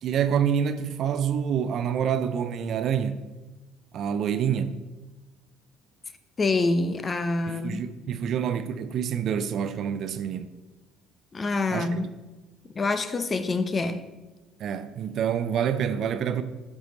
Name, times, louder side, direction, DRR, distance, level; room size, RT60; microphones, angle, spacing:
voice 1, 0.0-3.2 3.9-4.8 7.5-10.5 11.7-12.0 14.6-16.4, right 8 dB, 55° right, 0.5 m, -27 dB
voice 2, 6.4-7.8 11.3-12.1 12.7-14.0, left 3 dB, 30° left, 0.7 m, -26 dB
9.0 x 4.8 x 4.0 m
hypercardioid pair, 60°, 0 cm